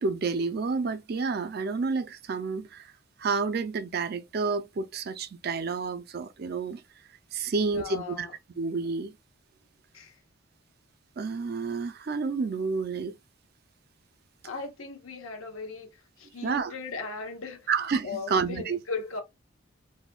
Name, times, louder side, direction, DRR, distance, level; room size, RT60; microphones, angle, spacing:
voice 1, 0.0-2.9 3.2-6.8 7.3-8.3 8.6-9.1 11.2-13.1 16.4-16.7 17.7-18.8, right 4 dB, 45° right, 0.4 m, -29 dB
voice 2, 7.5-8.3 9.9-10.2 14.4-17.7 18.0-19.2, left 4 dB, 80° left, 0.9 m, -38 dB
4.1 x 2.2 x 2.3 m
head